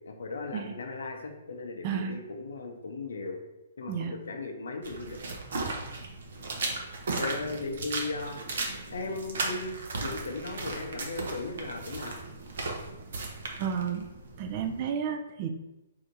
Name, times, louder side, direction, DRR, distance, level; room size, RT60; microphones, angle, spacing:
voice 1, 0.1-3.4 3.8-5.2 7.1-8.4 8.9-12.2, left 3 dB, 80° left, 4 dB, 0.6 m, -37 dB
voice 2, 1.8-2.2 3.9-4.1 13.6-14.1 14.4-15.5, right 7 dB, 40° right, 6 dB, 0.4 m, -32 dB
sound 1, 4.8-14.8, right 3 dB, 70° right, 0.7 m, -36 dB
2.8 x 2.6 x 3.8 m, 0.98 s
hypercardioid pair, 140°, 0 cm